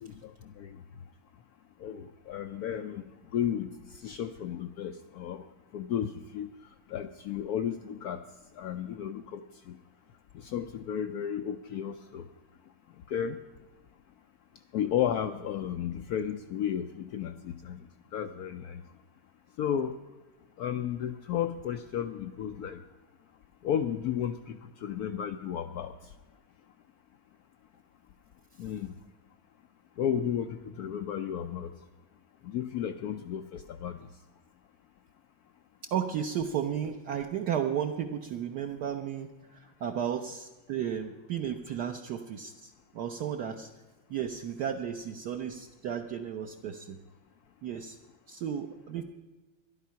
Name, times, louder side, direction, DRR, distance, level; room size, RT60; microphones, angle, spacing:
voice 1, 0.0-0.8 1.8-3.0 3.3-5.4 5.7-6.5 6.9-8.2 8.6-9.4 9.7-9.8 10.3-12.2 13.1-13.4 14.7-17.8 18.1-18.8 19.6-20.0 20.6-22.8 23.6-25.9 28.6-28.9 30.0-31.7 32.4-34.0, left 9 dB, 85° left, 9 dB, 0.8 m, -33 dB
voice 2, 35.8-43.7 44.1-47.0 47.6-48.0 48.3-49.0, right 8 dB, 65° right, 3 dB, 1.1 m, -34 dB
12.5 x 11.5 x 5.7 m, 1.2 s
omnidirectional pair, 2.2 m